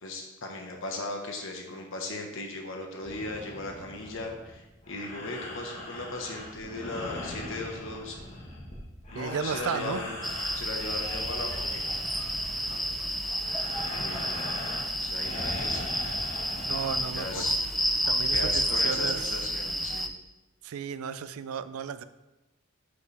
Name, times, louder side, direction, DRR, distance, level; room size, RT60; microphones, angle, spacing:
voice 1, 0.0-8.2 9.1-10.2 10.5-11.8 12.7-13.0 13.9-14.4 15.0-16.1 17.1-17.5 18.3-20.1, left 2 dB, 65° left, 2 dB, 1.3 m, -37 dB
sound 1, 3.0-17.7, left 1 dB, 30° left, 1.4 m, -41 dB
voice 2, 9.1-10.0 16.6-17.5 18.1-19.4 20.6-22.0, right 7 dB, 85° right, 13 dB, 0.4 m, -34 dB
sound 2, 10.2-20.1, equal, ahead, 0.3 m, -30 dB
9.4 x 5.1 x 3.4 m, 1.0 s
head